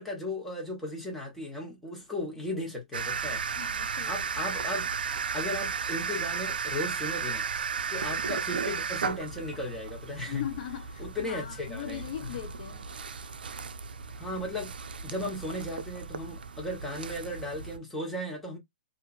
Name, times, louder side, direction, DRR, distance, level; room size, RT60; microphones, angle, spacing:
voice 1, 0.0-3.8 4.1-4.9 5.3-7.4 7.9-10.4 11.0-12.3 14.1-14.7 15.0-18.6, left 1 dB, 5° left, 1.1 m, -36 dB
sound 1, 2.9-17.8, right 6 dB, 85° right, 0.4 m, -35 dB
voice 2, 3.6-4.2 10.3-12.9, left 11 dB, 50° left, 0.5 m, -39 dB
2.8 x 2.4 x 2.5 m
hypercardioid pair, 150°, 5 cm